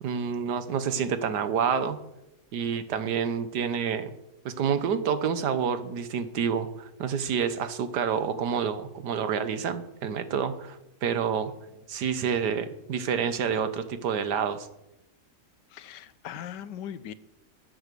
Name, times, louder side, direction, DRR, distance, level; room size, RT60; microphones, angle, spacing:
voice 1, 0.0-2.0 2.5-4.1 4.5-11.5 11.9-14.7, right 7 dB, 75° right, 11 dB, 1.6 m, -28 dB
voice 2, 15.7-17.1, left 10 dB, 85° left, 15 dB, 1.4 m, -39 dB
15.0 x 7.9 x 6.8 m, 0.91 s
omnidirectional pair, 1.8 m